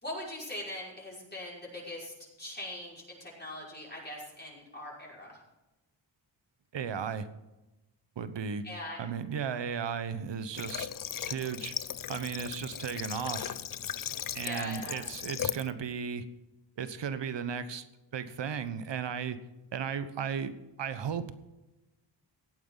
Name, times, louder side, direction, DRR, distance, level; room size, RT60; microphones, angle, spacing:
voice 1, 0.0-5.4 8.6-9.0 14.4-15.1, left 1 dB, 20° left, -5 dB, 5.6 m, -41 dB
voice 2, 6.7-7.3 8.2-8.6 9.0-10.9 11.3-11.7 12.1-13.6 14.3-16.3 16.8-17.8 18.1-19.4 19.7-20.5 20.8-21.3, right 7 dB, 65° right, 12 dB, 1.1 m, -35 dB
Water / Water tap faucet, 10.5-15.7, left 9 dB, 45° left, 0.6 m, -37 dB
17.0 x 9.2 x 4.0 m, 1.0 s
cardioid pair, 80°, 47 cm